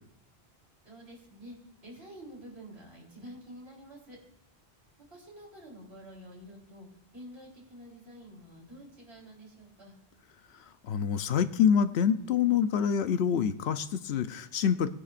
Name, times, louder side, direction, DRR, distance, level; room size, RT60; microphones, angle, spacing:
voice 1, 0.8-1.6 1.8-4.2 5.1-6.9 7.1-10.0, equal, 85° right, -2 dB, 3.9 m, -48 dB
voice 2, 10.9-14.9, left 8 dB, 80° left, 11 dB, 0.9 m, -26 dB
20.0 x 10.0 x 2.5 m, 0.74 s
omnidirectional pair, 1.1 m